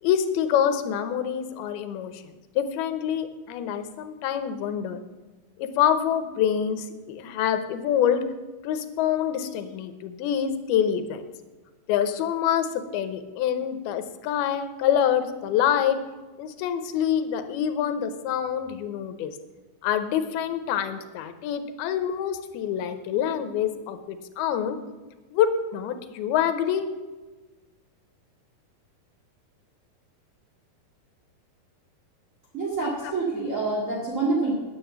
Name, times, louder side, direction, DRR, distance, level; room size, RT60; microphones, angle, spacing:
voice 1, 0.0-2.2 2.6-5.0 5.6-8.2 8.6-11.2 11.9-16.0 16.4-19.4 19.8-24.8 25.3-26.9 33.0-33.1, left 9 dB, 85° left, 10 dB, 2.8 m, -26 dB
voice 2, 32.5-34.6, right 3 dB, 30° right, -4 dB, 1.4 m, -26 dB
9.5 x 9.3 x 6.9 m, 1.3 s
omnidirectional pair, 4.4 m